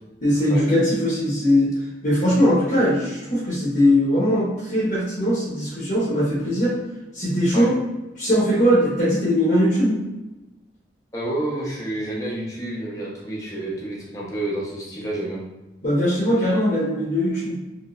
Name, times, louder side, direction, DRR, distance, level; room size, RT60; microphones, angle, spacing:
voice 1, 0.2-1.7 2.0-6.8 7.1-7.7 8.2-10.0 15.8-17.6, equal, 40° left, -8 dB, 0.9 m, -20 dB
voice 2, 11.1-15.4, right 1 dB, 20° left, -4 dB, 0.8 m, -29 dB
3.2 x 3.1 x 2.4 m, 1.0 s
head